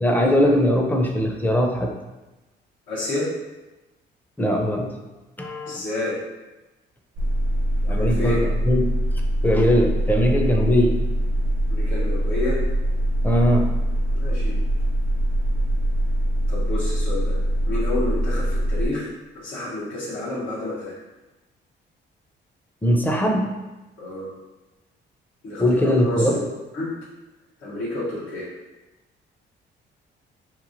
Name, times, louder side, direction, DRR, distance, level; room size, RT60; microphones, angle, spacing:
voice 1, 0.0-1.9 4.4-5.0 5.4-5.8 7.8-8.8 9.4-11.0 13.2-13.6 22.8-23.5 25.6-26.3, equal, 10° left, 1 dB, 0.4 m, -20 dB
voice 2, 2.9-3.3 5.7-6.2 7.9-8.4 11.7-12.6 14.1-14.6 16.5-17.3 17.7-19.1 19.3-21.0 24.0-24.3 25.4-26.4 26.7-26.9 27.6-28.5, left 1 dB, 85° left, -9 dB, 0.9 m, -29 dB
sound 1, 7.2-18.9, equal, 80° right, 0.7 m, -23 dB
3.0 x 2.7 x 2.5 m, 1.1 s
cardioid pair, 90°, 20 cm